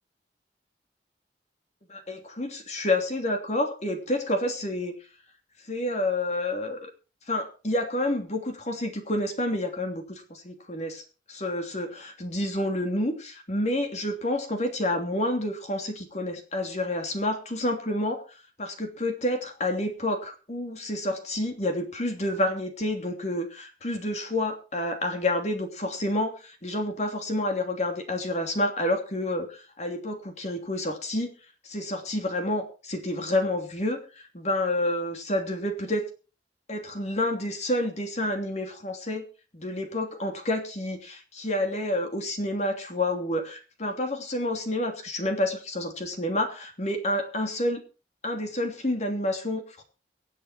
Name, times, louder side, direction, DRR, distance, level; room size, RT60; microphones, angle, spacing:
voice 1, 1.9-4.9 5.7-6.9 7.3-18.2 18.6-31.3 31.6-36.1 36.7-39.2 39.5-47.8 48.2-49.8, left 1 dB, 40° left, 5 dB, 3.0 m, -29 dB
24.0 x 8.2 x 4.4 m, 0.35 s
head